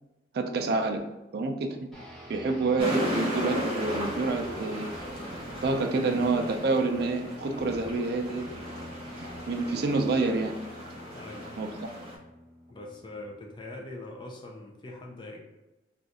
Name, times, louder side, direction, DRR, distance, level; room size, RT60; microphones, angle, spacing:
voice 1, 0.3-1.0 1.3-1.8 2.3-4.9 5.6-8.5 9.2-10.5 11.6-11.7, right 3 dB, 55° right, 4 dB, 0.3 m, -28 dB
sound 1, 1.9-13.6, equal, ahead, 0.8 m, -46 dB
sound 2, 2.8-12.2, equal, 30° right, 0.9 m, -36 dB
voice 2, 11.1-11.5 12.7-15.4, left 2 dB, 25° left, 0 dB, 0.4 m, -42 dB
2.5 x 2.3 x 4.0 m, 1.0 s
head